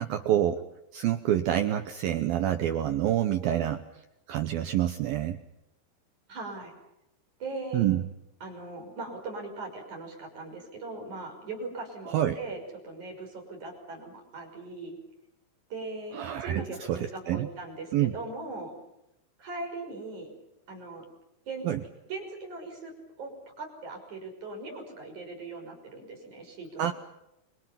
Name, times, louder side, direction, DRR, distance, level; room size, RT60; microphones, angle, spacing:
voice 1, 0.0-4.0 4.3-5.4 7.7-8.1 12.1-12.4 16.1-17.5 17.9-18.2 21.6-21.8 26.8-26.9, right 11 dB, 80° right, 8 dB, 2.1 m, -27 dB
voice 2, 6.3-6.7 7.4-7.9 8.4-15.0 15.7-18.7 19.4-20.3 20.7-21.0 21.5-21.7 22.1-22.9 23.2-26.9, right 3 dB, 40° right, 2 dB, 7.1 m, -39 dB
29.5 x 25.0 x 5.8 m, 0.88 s
omnidirectional pair, 5.6 m